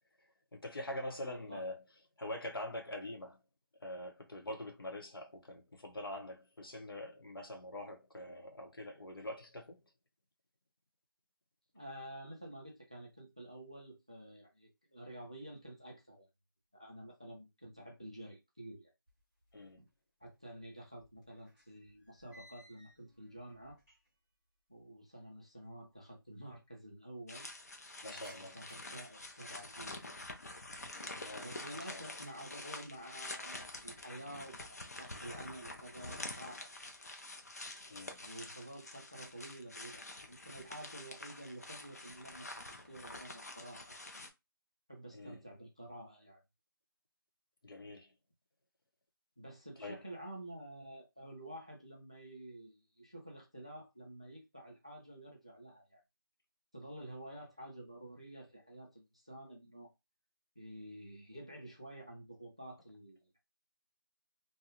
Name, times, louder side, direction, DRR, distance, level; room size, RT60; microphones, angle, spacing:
voice 1, 0.5-1.8 2.2-3.4 3.8-9.8 19.5-19.8 28.0-28.6 31.2-31.5 31.9-32.0 37.9-38.2 45.1-45.4 47.6-48.1 49.8-50.0, left 1 dB, 75° left, 1.0 m, -44 dB
voice 2, 1.2-1.6 11.7-16.3 16.7-18.9 19.8-19.9 20.2-23.8 24.7-27.5 28.0-30.2 31.4-36.9 38.2-44.0 44.9-46.4 49.4-56.0 56.7-59.9 60.6-63.4, right 1 dB, 15° right, 0.3 m, -50 dB
sound 1, 19.1-19.9 20.2-24.3 24.6-24.7 25.6-25.7 25.8-25.9 26.2-26.7 27.1-30.3 30.7-31.2 31.7-32.1 32.5-33.4, equal, 10° left, 0.8 m, -64 dB
sound 2, 27.3-44.3, left 2 dB, 45° left, 0.5 m, -47 dB
2.6 x 2.2 x 2.8 m
figure-of-eight pair, 175°, 12 cm